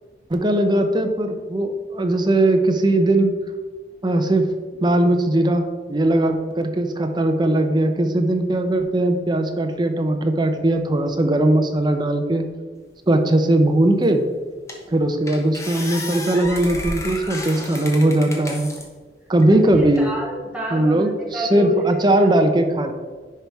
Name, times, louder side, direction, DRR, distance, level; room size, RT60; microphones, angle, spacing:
voice 1, 0.3-3.3 4.0-4.5 4.8-12.4 13.1-14.3 14.9-18.7 19.3-20.1 20.7-21.1 21.5-22.9, right 1 dB, 25° right, 6 dB, 0.6 m, -19 dB
sound 1, 14.0-14.1 14.7-14.9 15.3-18.9 19.4-20.1, left 2 dB, 15° left, 1.0 m, -32 dB
voice 2, 19.6-21.8 22.1-22.3, right 1 dB, 5° right, -3 dB, 1.2 m, -31 dB
10.0 x 3.4 x 4.6 m, 1.4 s
head